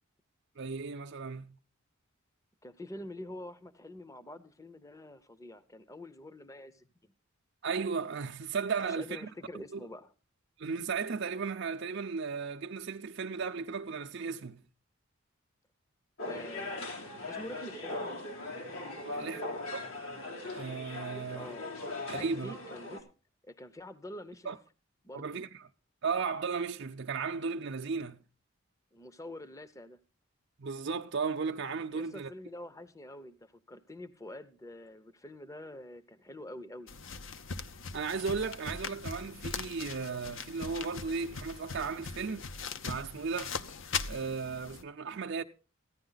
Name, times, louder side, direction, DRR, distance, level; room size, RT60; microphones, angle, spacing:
voice 1, 0.6-1.6 7.6-9.3 9.7-9.8 10.6-14.6 19.1-19.4 19.7-19.8 20.5-21.5 22.1-22.5 24.4-24.6 25.1-25.5 26.0-28.2 30.6-32.3 37.9-42.5 42.8-43.6 44.1-45.4, right 5 dB, 55° right, 0.6 m, -35 dB
voice 2, 2.6-7.1 8.8-10.1 16.2-17.0 17.2-18.0 19.1-19.4 21.3-21.7 22.1-23.1 23.4-24.5 25.0-25.4 28.9-30.0 31.9-36.9, left 1 dB, 15° left, 0.7 m, -46 dB
sound 1, 16.2-23.0, left 2 dB, 90° left, 3.3 m, -40 dB
sound 2, 36.9-44.8, left 5 dB, 65° left, 0.8 m, -40 dB
15.0 x 10.5 x 3.9 m
head